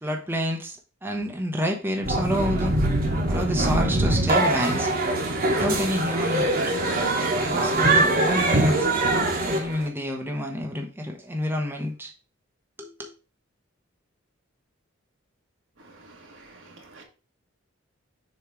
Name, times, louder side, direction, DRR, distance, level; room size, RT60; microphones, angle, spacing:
voice 1, 0.0-2.7 3.3-4.9 5.5-6.7 7.4-8.9 9.5-12.1 12.8-13.1, equal, 10° right, 1 dB, 0.9 m, -29 dB
sound 1, 2.0-9.9, right 2 dB, 50° right, 1.4 m, -23 dB
voice 2, 15.8-17.0, right 2 dB, 75° right, 2 dB, 1.6 m, -49 dB
6.8 x 3.2 x 4.6 m, 0.33 s
head